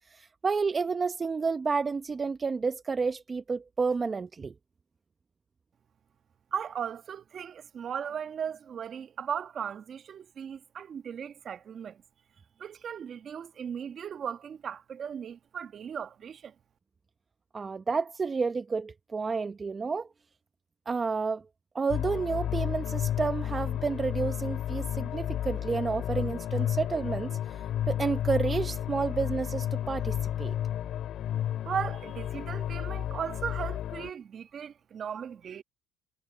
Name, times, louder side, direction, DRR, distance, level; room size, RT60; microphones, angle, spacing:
voice 1, 0.1-4.5 17.5-20.1 20.9-21.4 21.7-30.6, right 4 dB, 25° right, 0.9 m, -30 dB
voice 2, 6.5-12.0 12.6-16.5 31.6-35.6, right 8 dB, 45° right, 1.5 m, -37 dB
sound 1, 21.9-34.1, left 11 dB, 60° left, 2.4 m, -32 dB
supercardioid pair, 95°, 0 cm